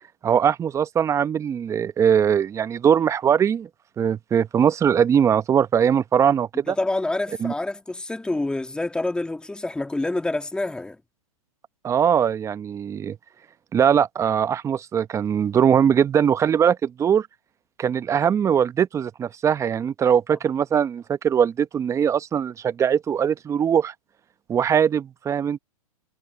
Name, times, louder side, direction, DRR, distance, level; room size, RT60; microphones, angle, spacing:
voice 1, 0.2-3.7 4.0-6.8 7.4-7.5 11.8-13.2 13.7-17.3 17.8-23.9 24.5-25.6, right 8 dB, 15° right, 0.9 m, -21 dB
voice 2, 6.7-11.0, left 2 dB, 5° left, 1.9 m, -27 dB
hypercardioid pair, 125°, 19 cm